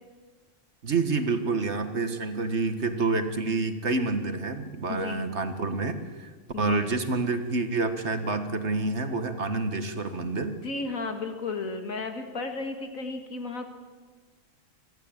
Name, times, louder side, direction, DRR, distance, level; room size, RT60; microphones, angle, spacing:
voice 1, 0.8-6.3 6.6-10.6, right 3 dB, 55° right, 9 dB, 1.8 m, -28 dB
voice 2, 4.9-5.3 6.5-6.9 10.6-13.7, left 3 dB, 85° left, 6 dB, 2.5 m, -34 dB
23.5 x 15.0 x 8.8 m, 1.4 s
omnidirectional pair, 1.4 m